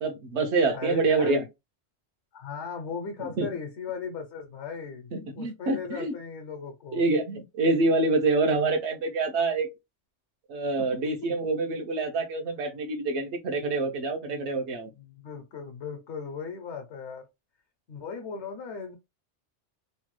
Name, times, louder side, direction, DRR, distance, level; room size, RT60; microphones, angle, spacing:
voice 1, 0.0-1.4 3.2-3.5 5.1-6.1 6.9-9.7 10.5-14.9, right 3 dB, 75° right, 1.0 m, -26 dB
voice 2, 0.7-1.4 2.3-7.0 10.8-11.0 14.2-14.4 14.9-17.2 17.9-19.0, left 5 dB, 75° left, 0.9 m, -37 dB
3.0 x 2.1 x 3.0 m
omnidirectional pair, 1.2 m